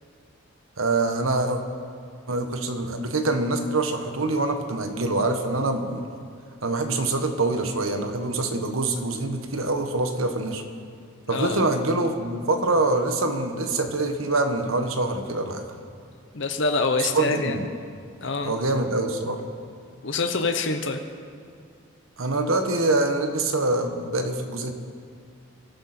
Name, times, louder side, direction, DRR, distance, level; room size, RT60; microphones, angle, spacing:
voice 1, 0.8-1.6 2.3-6.1 6.6-10.6 11.3-15.6 17.0-17.6 18.4-19.4 22.2-24.7, right 2 dB, 80° right, 6 dB, 1.4 m, -25 dB
voice 2, 11.3-11.7 16.3-17.6 18.2-18.5 20.0-21.0, left 3 dB, 60° left, 5 dB, 0.9 m, -25 dB
24.0 x 13.0 x 4.4 m, 2.2 s
head